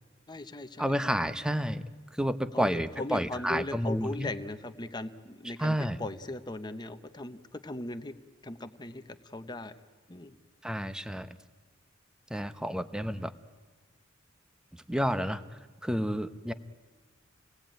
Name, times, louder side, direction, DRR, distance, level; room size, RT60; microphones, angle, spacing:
voice 1, 0.3-0.9 2.5-8.1 8.4-9.7 10.1-10.3, left 2 dB, 20° left, 8 dB, 0.9 m, -38 dB
voice 2, 0.8-1.8 2.1-4.3 5.6-6.0 10.6-11.3 12.3-13.3 14.9-15.4 15.8-16.5, equal, 5° right, 11 dB, 0.8 m, -30 dB
27.5 x 19.0 x 9.0 m, 1.4 s
head